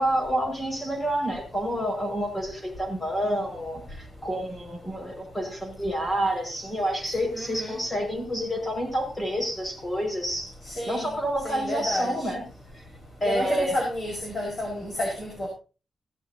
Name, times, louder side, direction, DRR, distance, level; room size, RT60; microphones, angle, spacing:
voice 1, 0.0-10.5 10.9-12.4 12.7-12.8 13.2-13.8, equal, 15° left, 2 dB, 5.3 m, -28 dB
voice 2, 7.3-7.8 10.7-11.1 11.4-12.3 13.2-15.5, left 1 dB, 40° left, -3 dB, 5.0 m, -30 dB
16.5 x 12.5 x 2.8 m, 0.33 s
wide cardioid pair, 170°, 0 cm